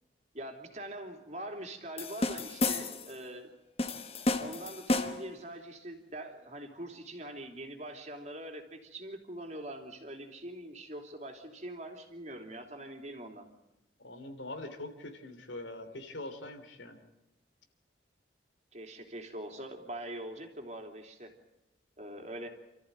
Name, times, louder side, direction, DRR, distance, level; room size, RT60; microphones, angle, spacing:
voice 1, 0.3-3.5 4.4-13.5 18.7-21.3 22.0-22.5, right 1 dB, 40° right, 4 dB, 3.0 m, -43 dB
sound 1, 2.0-3.1 3.8-5.3, left 2 dB, 30° left, 1.3 m, -32 dB
voice 2, 14.0-17.0, left 2 dB, 80° left, 7 dB, 3.3 m, -43 dB
28.5 x 14.0 x 9.3 m, 0.97 s
head